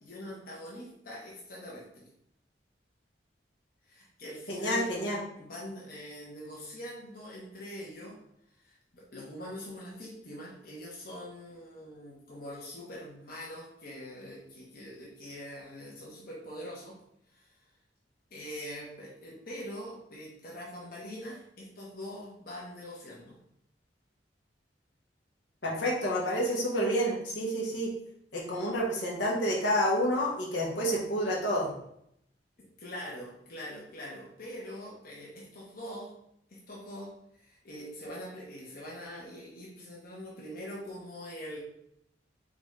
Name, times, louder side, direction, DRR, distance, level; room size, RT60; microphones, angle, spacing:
voice 1, 0.0-2.1 3.8-4.9 5.4-8.2 8.6-17.0 17.3-17.5 18.3-23.4 32.6-36.1 36.5-41.6, equal, 55° left, -4 dB, 1.0 m, -43 dB
voice 2, 4.5-5.2 25.6-27.9 28.3-31.8, equal, 85° left, -3 dB, 1.3 m, -29 dB
3.9 x 3.7 x 3.2 m, 0.74 s
head